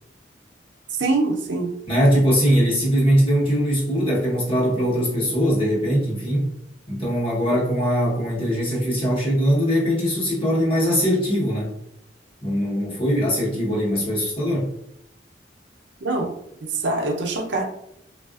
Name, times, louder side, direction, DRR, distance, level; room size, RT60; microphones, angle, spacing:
voice 1, 1.0-1.7 16.0-16.3 16.6-17.6, right 2 dB, 75° right, 1 dB, 0.6 m, -24 dB
voice 2, 1.9-6.5 6.9-11.7 12.4-14.7, equal, 30° left, -6 dB, 1.0 m, -21 dB
3.5 x 2.4 x 2.3 m, 0.78 s
head